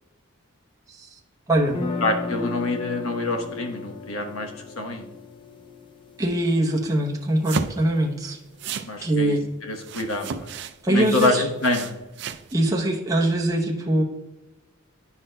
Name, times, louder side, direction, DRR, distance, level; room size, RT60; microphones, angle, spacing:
sound 1, 1.7-7.7, left 3 dB, 25° left, 0.5 m, -35 dB
voice 1, 2.0-5.1 8.9-10.5 10.9-11.9, left 2 dB, 80° left, 4 dB, 1.0 m, -26 dB
voice 2, 6.2-8.4 9.0-9.4 10.8-11.4 12.5-14.0, right 1 dB, 15° right, -2 dB, 0.8 m, -22 dB
sound 2, 7.4-7.9 8.6-8.9 9.8-10.7 11.0-12.5, right 6 dB, 55° right, 0.4 m, -33 dB
9.8 x 5.9 x 2.2 m, 1.1 s
head